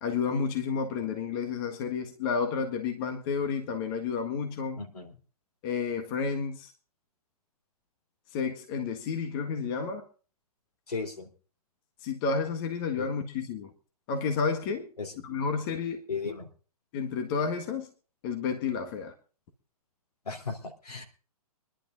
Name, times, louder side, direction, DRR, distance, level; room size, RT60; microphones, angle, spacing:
voice 1, 0.0-4.8 5.6-6.7 8.3-10.1 12.0-13.7 14.1-14.9 15.2-16.0 16.9-17.9 18.2-19.1, left 5 dB, 35° left, 1.7 m, -31 dB
voice 2, 4.8-5.1 10.9-11.3 13.0-13.1 15.0-15.1 16.1-16.5 20.3-21.0, left 4 dB, 80° left, 3.5 m, -36 dB
24.5 x 11.5 x 2.6 m
figure-of-eight pair, 125°, 20 cm